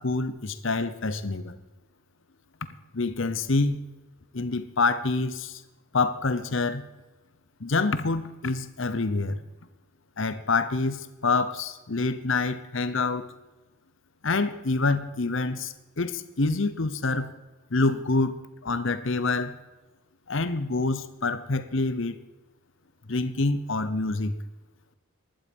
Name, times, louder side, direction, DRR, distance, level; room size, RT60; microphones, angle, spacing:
voice 1, 0.0-1.6 2.9-3.8 4.3-5.6 5.9-6.8 7.6-9.4 10.2-13.3 14.2-17.3 17.7-19.5 20.3-22.2 23.1-24.3, left 3 dB, 65° left, 13 dB, 0.9 m, -26 dB
16.0 x 11.5 x 5.4 m, 1.1 s
head